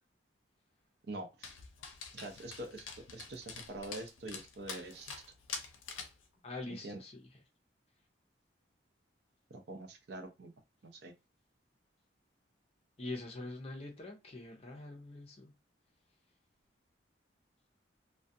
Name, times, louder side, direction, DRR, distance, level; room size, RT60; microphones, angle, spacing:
voice 1, 1.0-1.5 2.1-5.1 6.7-7.0 9.5-10.5 10.8-11.1, right 2 dB, 55° right, 0.5 m, -45 dB
Dog, 1.4-6.2, left 5 dB, 90° left, 0.5 m, -46 dB
voice 2, 6.4-7.3 13.0-15.5, left 2 dB, 30° left, 0.5 m, -44 dB
2.3 x 2.2 x 2.6 m
head